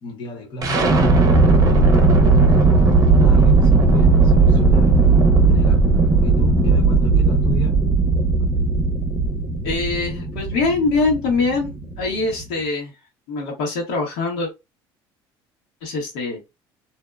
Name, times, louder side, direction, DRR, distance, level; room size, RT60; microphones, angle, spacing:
voice 1, 0.0-2.7 3.1-4.9 5.5-5.9 6.2-7.8, equal, 55° left, 1.0 m, -32 dB
sound 1, 0.6-12.5, right 3 dB, 35° right, 0.7 m, -16 dB
voice 2, 9.6-11.7 12.0-12.9 13.3-14.5 15.8-16.4, left 3 dB, 85° left, 1.1 m, -23 dB
2.6 x 2.1 x 2.3 m
supercardioid pair, 105°, 10 cm